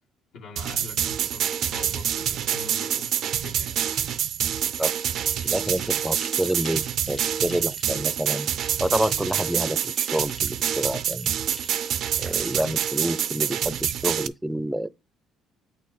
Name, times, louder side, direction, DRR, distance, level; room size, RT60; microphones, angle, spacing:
voice 1, 0.3-3.8, left 4 dB, 75° left, 1.8 m, -43 dB
sound 1, 0.6-14.3, right 9 dB, 65° right, 0.5 m, -27 dB
sound 2, 5.2-12.5, left 3 dB, 30° left, 0.7 m, -47 dB
voice 2, 5.2-8.5 8.8-11.3 12.2-14.9, right 1 dB, 5° right, 0.5 m, -28 dB
8.1 x 4.2 x 4.1 m
cardioid pair, 95°, 0 cm